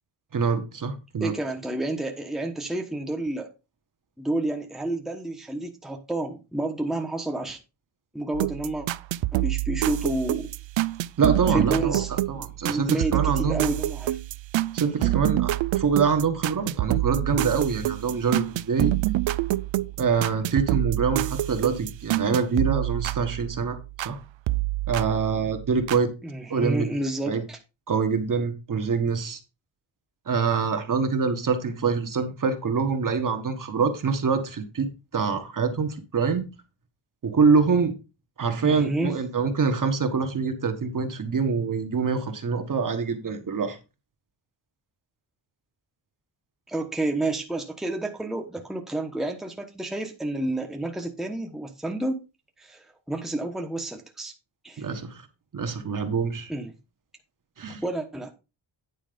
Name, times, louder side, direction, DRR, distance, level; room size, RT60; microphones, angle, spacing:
voice 1, 0.3-1.3 11.2-13.6 14.7-18.9 20.0-23.8 24.0-24.2 24.9-26.1 26.5-26.9 27.3-27.4 27.9-29.4 30.3-36.5 37.2-38.0 38.4-43.8 54.8-55.2 55.5-56.5 57.6-57.8, right 5 dB, 45° right, 1.5 m, -25 dB
voice 2, 1.2-3.5 4.2-7.6 8.1-8.9 9.3-10.5 11.5-14.2 15.0-15.2 26.2-27.6 38.6-39.2 46.7-52.2 52.6-54.3 54.6-54.9 56.5-56.7 57.8-58.3, right 2 dB, ahead, 1.1 m, -30 dB
sound 1, 8.3-24.2 24.5-26.0, right 16 dB, 75° right, 0.5 m, -27 dB
9.7 x 4.9 x 5.1 m
wide cardioid pair, 165°, 46 cm